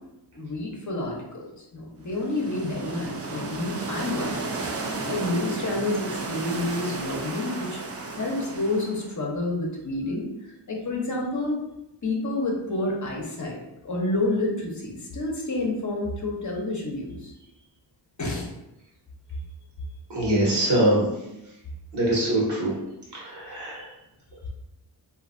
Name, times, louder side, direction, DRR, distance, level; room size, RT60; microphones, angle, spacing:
voice 1, 0.3-1.4 1.7-7.8 8.1-10.3 10.7-11.6 12.0-17.3 18.2-18.5, left 2 dB, 40° left, -1 dB, 0.8 m, -29 dB
sound 1, 2.1-9.1, right 3 dB, 35° right, 0.4 m, -34 dB
voice 2, 20.1-21.1 21.9-22.7 23.1-23.8, right 1 dB, 65° right, -6 dB, 1.3 m, -23 dB
3.3 x 2.6 x 2.5 m, 0.90 s
cardioid pair, 75°, 44 cm